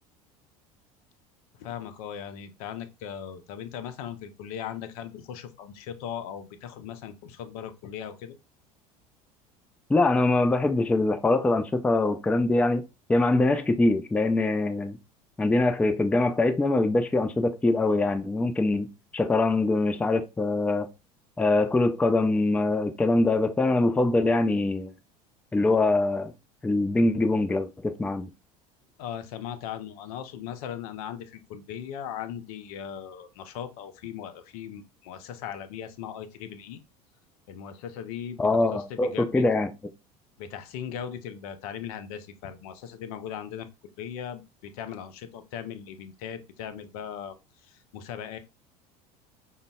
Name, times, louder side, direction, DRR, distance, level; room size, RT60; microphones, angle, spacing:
voice 1, 1.6-8.4 29.0-36.8 37.5-39.5 40.4-43.7 44.0-47.4 47.6-48.4, left 9 dB, 70° left, 0.5 m, -38 dB
voice 2, 9.9-12.8 13.1-15.0 15.4-18.9 19.1-20.9 21.4-24.9 25.5-26.3 26.6-28.3 38.4-39.7, left 2 dB, 5° left, 0.3 m, -23 dB
5.0 x 2.0 x 2.2 m
hypercardioid pair, 75°, 20 cm